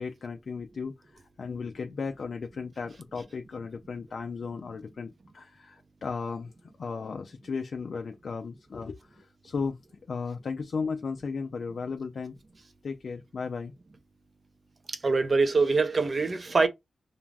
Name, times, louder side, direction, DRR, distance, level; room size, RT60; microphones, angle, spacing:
voice 1, 0.0-6.5 6.8-9.8 10.1-12.3 12.8-13.7, left 5 dB, 60° left, 0.3 m, -35 dB
voice 2, 14.9-16.7, right 4 dB, 40° right, 0.6 m, -24 dB
2.5 x 2.3 x 3.2 m
wide cardioid pair, 95°, 0 cm